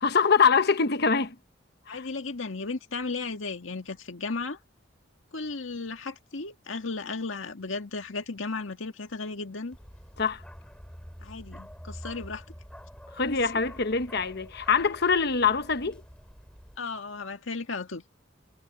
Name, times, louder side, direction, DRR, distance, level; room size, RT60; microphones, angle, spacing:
voice 1, 0.0-1.4 1.9-2.0 10.2-10.4 13.1-16.0, left 5 dB, 55° left, 1.0 m, -24 dB
voice 2, 1.9-4.6 5.3-9.8 11.2-12.4 13.3-13.4 16.8-18.0, left 3 dB, 90° left, 1.8 m, -35 dB
Bark, 9.7-16.8, equal, 5° left, 4.5 m, -47 dB
head